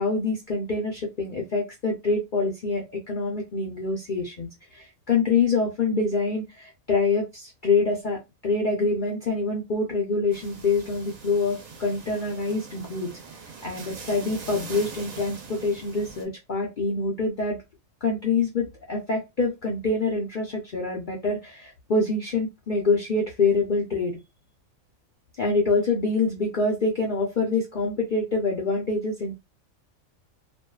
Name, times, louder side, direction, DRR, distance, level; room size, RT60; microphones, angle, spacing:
voice 1, 0.0-13.2 13.6-17.6 18.0-24.2 25.4-29.3, left 3 dB, 60° left, 0 dB, 0.5 m, -26 dB
sound 1, 10.3-16.3, right 5 dB, 75° right, 1.1 m, -42 dB
2.6 x 2.2 x 2.2 m, 0.23 s
omnidirectional pair, 1.4 m